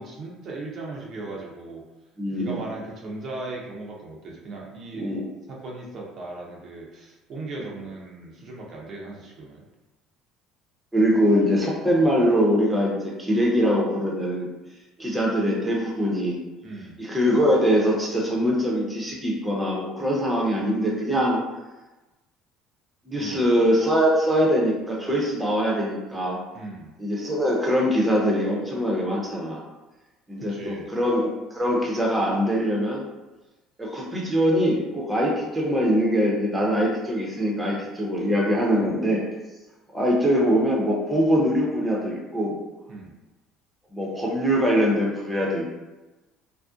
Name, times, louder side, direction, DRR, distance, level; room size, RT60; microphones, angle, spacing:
voice 1, 0.0-1.8 2.3-5.2 5.5-9.6 16.6-17.0 23.2-23.4 26.5-26.9 30.4-30.9 38.7-39.0 42.9-43.2, right 2 dB, 55° right, -3 dB, 0.6 m, -37 dB
voice 2, 2.2-2.6 4.9-5.3 10.9-14.5 15.0-16.4 17.0-21.4 23.0-26.4 27.0-29.6 30.3-33.0 33.8-39.2 39.9-42.5 43.9-45.7, equal, 10° right, -3 dB, 0.7 m, -23 dB
2.5 x 2.0 x 2.4 m, 1.1 s
supercardioid pair, 85°, 0 cm